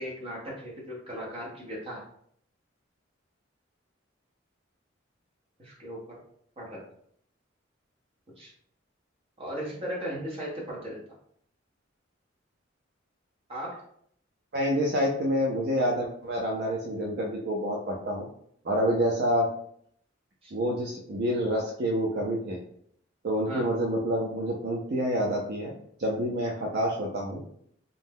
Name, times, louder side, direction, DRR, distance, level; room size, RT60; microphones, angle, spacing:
voice 1, 0.0-2.0 5.6-6.2 6.6-6.8 8.4-8.5 9.4-11.0 13.5-13.8 20.4-20.5 23.5-23.7, equal, 30° right, -4 dB, 0.9 m, -37 dB
voice 2, 14.5-18.3 18.6-19.5 20.5-22.6 23.2-25.7 26.0-27.4, equal, 55° right, -2 dB, 0.4 m, -28 dB
2.6 x 2.1 x 3.5 m, 0.66 s
head